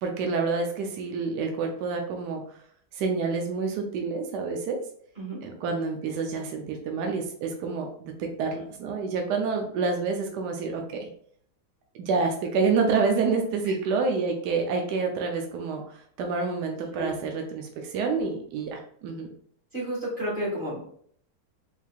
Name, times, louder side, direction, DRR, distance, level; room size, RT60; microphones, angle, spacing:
voice 1, 0.0-2.4 2.9-4.8 5.4-11.1 12.0-19.3, right 4 dB, 70° right, 3 dB, 1.0 m, -28 dB
voice 2, 16.9-17.2 19.7-20.8, right 1 dB, 30° right, -8 dB, 1.8 m, -31 dB
4.5 x 3.6 x 2.3 m, 0.62 s
omnidirectional pair, 2.3 m